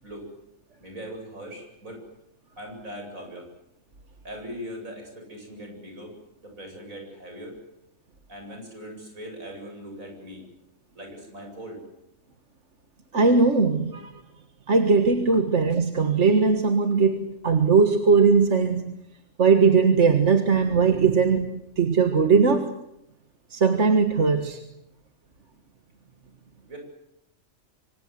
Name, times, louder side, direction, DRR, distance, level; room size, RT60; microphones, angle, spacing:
voice 1, 0.8-2.0 2.6-3.5 4.2-6.1 6.4-7.6 8.3-10.4 10.9-11.8 26.7-26.8, equal, 75° right, 2 dB, 8.5 m, -40 dB
voice 2, 13.1-14.1 14.7-19.0 19.4-22.7 23.5-24.6, right 5 dB, 60° right, 7 dB, 1.9 m, -20 dB
25.5 x 25.5 x 7.9 m, 0.82 s
omnidirectional pair, 1.4 m